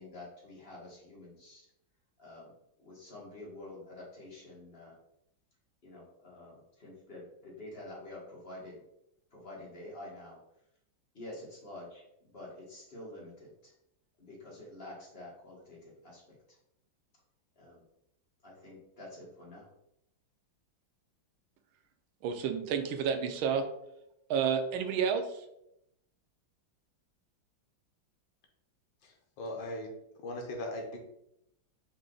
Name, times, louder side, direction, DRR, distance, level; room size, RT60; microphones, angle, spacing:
voice 1, 0.0-1.6 2.2-5.0 5.8-8.8 9.3-10.4 11.1-13.7 14.2-16.6 17.5-17.8 18.4-19.7, left 1 dB, 35° left, -4 dB, 1.4 m, -48 dB
voice 2, 22.2-23.7 24.3-25.5, right 7 dB, 90° right, 7 dB, 1.4 m, -30 dB
voice 3, 29.0-29.9 30.2-31.0, left 1 dB, 75° left, 2 dB, 1.5 m, -39 dB
4.9 x 2.6 x 3.8 m, 0.80 s
omnidirectional pair, 2.2 m